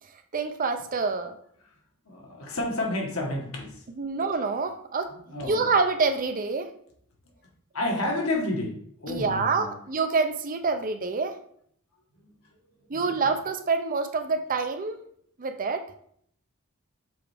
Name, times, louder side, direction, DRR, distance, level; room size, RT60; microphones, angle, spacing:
voice 1, 0.3-1.4 4.0-6.7 9.1-11.4 12.9-15.0 15.4-15.8, right 4 dB, 40° right, 8 dB, 0.6 m, -27 dB
voice 2, 2.1-3.8 5.3-5.7 7.7-8.8 9.0-9.7 12.9-13.0, left 2 dB, 65° left, 0 dB, 1.5 m, -30 dB
6.9 x 4.5 x 3.5 m, 0.64 s
head